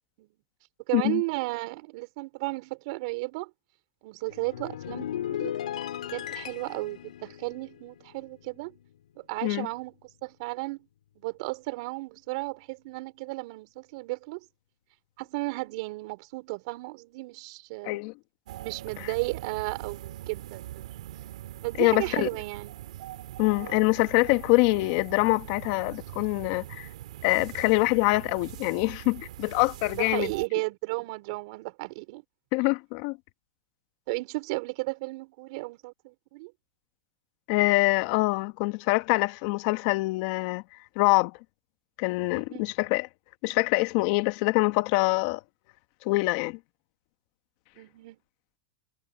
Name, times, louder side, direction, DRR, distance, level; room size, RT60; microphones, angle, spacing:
voice 1, 0.9-3.5 4.0-5.5 6.1-8.7 9.1-9.9 10.2-10.9 11.2-14.4 15.2-18.0 18.6-20.8 21.6-22.7 30.0-32.2 34.1-36.5 42.4-42.6 47.8-48.2, right 25 dB, 55° right, 5.1 m, -34 dB
sound 1, 4.3-8.9 9.2-9.5, left 11 dB, 90° left, 4.4 m, -37 dB
sound 2, 18.5-30.5, right 14 dB, 75° right, 3.9 m, -42 dB
voice 2, 21.8-22.3 23.4-26.9 27.2-30.3 32.5-33.2 37.5-40.6 40.9-41.3 42.0-43.1 43.4-45.4 46.0-46.6, left 24 dB, 55° left, 1.6 m, -25 dB
supercardioid pair, 130°, 4 cm